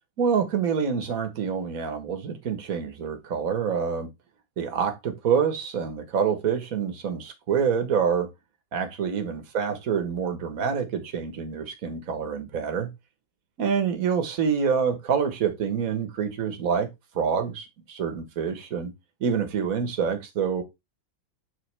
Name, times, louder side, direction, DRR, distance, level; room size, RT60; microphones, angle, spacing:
voice 1, 0.2-4.1 4.6-8.3 8.7-12.9 13.6-16.9 17.1-18.9 19.2-20.6, right 6 dB, 50° right, 1.7 m, -26 dB
10.5 x 4.0 x 3.4 m
omnidirectional pair, 2.1 m